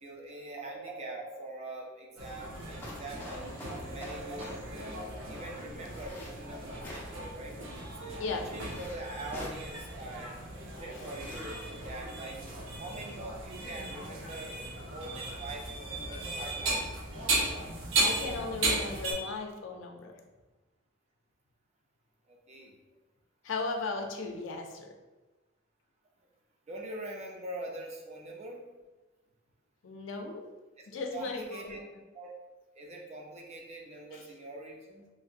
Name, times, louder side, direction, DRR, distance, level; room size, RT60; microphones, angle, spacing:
voice 1, 0.0-7.5 8.0-10.5 10.8-12.4 12.8-14.6 14.8-16.8 22.3-22.8 26.7-28.6 30.8-30.9 31.1-31.8 32.1-32.3 32.8-35.1, right 2 dB, 35° right, -1 dB, 0.5 m, -43 dB
sound 1, 2.2-19.1, right 2 dB, 85° right, 0.7 m, -36 dB
sound 2, 2.6-4.6 5.8-6.3 6.8-7.3 8.5-9.0 9.3-9.6 10.9-11.4, left 1 dB, 10° left, 0.6 m, -46 dB
voice 2, 18.0-20.1 23.4-24.9 29.8-30.5 30.9-31.8 34.1-34.2, left 3 dB, 70° left, 3 dB, 0.4 m, -36 dB
3.0 x 2.7 x 2.4 m, 1.2 s
head